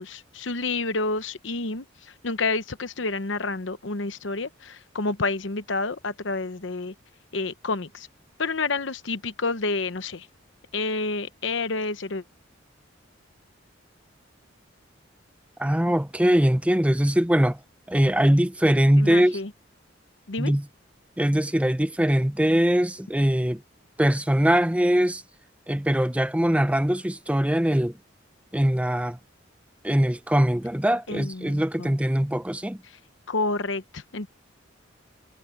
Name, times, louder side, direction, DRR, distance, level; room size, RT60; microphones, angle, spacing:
voice 1, 0.0-6.9 7.3-8.1 8.4-10.3 10.7-12.2 19.0-19.5 20.3-20.5 31.1-31.9 32.9-33.0 33.3-34.3, left 3 dB, 70° left, 1.0 m, -29 dB
voice 2, 15.6-17.6 17.9-19.4 20.4-20.6 21.2-23.6 24.0-25.2 25.7-28.0 28.5-29.2 29.8-32.8, equal, 5° right, 0.7 m, -22 dB
head